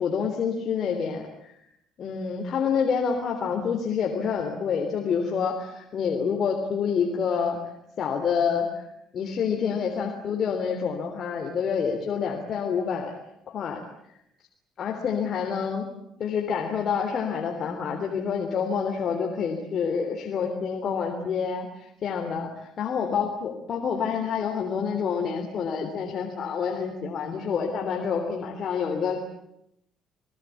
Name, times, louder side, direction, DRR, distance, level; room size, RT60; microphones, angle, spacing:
voice 1, 0.0-1.5 2.0-7.6 8.0-8.8 9.1-13.1 13.5-13.8 14.8-15.8 16.2-29.2, left 6 dB, 45° left, 2 dB, 3.3 m, -27 dB
29.5 x 20.0 x 8.4 m, 0.78 s
cardioid pair, 140°, 0 cm